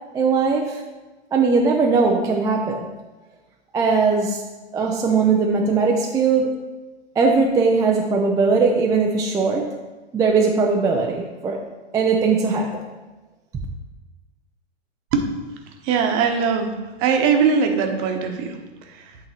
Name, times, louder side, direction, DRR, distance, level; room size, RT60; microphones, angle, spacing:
voice 1, 0.1-0.8 1.3-2.9 3.7-4.4 4.7-6.6 7.2-9.7 10.1-11.6 11.9-12.8, right 4 dB, 10° right, 0 dB, 0.4 m, -19 dB
voice 2, 15.8-16.7 17.0-19.2, right 6 dB, 40° right, 5 dB, 1.0 m, -21 dB
8.4 x 3.7 x 4.4 m, 1.2 s
hypercardioid pair, 115°, 33 cm